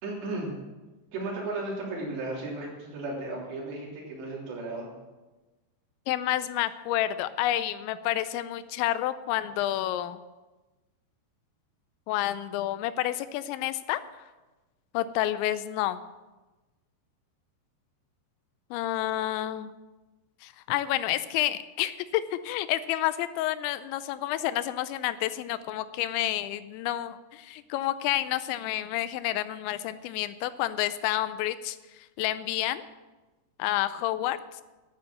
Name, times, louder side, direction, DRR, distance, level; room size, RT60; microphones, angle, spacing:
voice 1, 0.0-0.5 1.1-4.9, right 2 dB, 70° right, -3 dB, 5.3 m, -35 dB
voice 2, 6.1-10.2 12.1-14.0 14.9-16.0 18.7-19.7 20.4-32.8 33.6-34.4, left 13 dB, 85° left, 13 dB, 3.0 m, -29 dB
11.0 x 9.5 x 7.5 m, 1.2 s
omnidirectional pair, 5.2 m